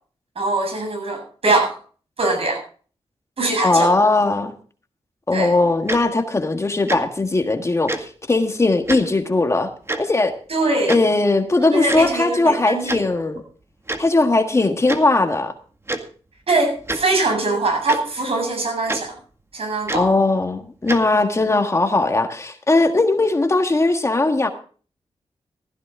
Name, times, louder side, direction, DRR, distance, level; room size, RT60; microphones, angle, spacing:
voice 1, 0.4-1.8 2.2-2.6 3.4-3.9 5.3-5.5 10.5-11.0 11.7-13.2 16.5-19.2 19.5-20.1, right 2 dB, 65° right, 3 dB, 7.7 m, -22 dB
voice 2, 3.6-4.5 5.3-9.7 10.0-10.3 10.9-13.4 14.0-15.5 19.9-24.5, left 2 dB, 25° left, 6 dB, 1.6 m, -19 dB
Tick-tock, 5.9-6.0 6.9-7.0 7.9-8.0 8.9-9.0 9.9-10.0 10.9-11.0 11.9-12.1 12.9-13.0 13.9-14.0 14.9-15.0 15.9-16.0 16.8-17.0 17.9-18.0 18.9-19.0 19.9-20.1 20.9-21.0, right 2 dB, 25° right, 1.9 m, -25 dB
16.0 x 14.0 x 3.7 m, 0.41 s
wide cardioid pair, 120°, 11 cm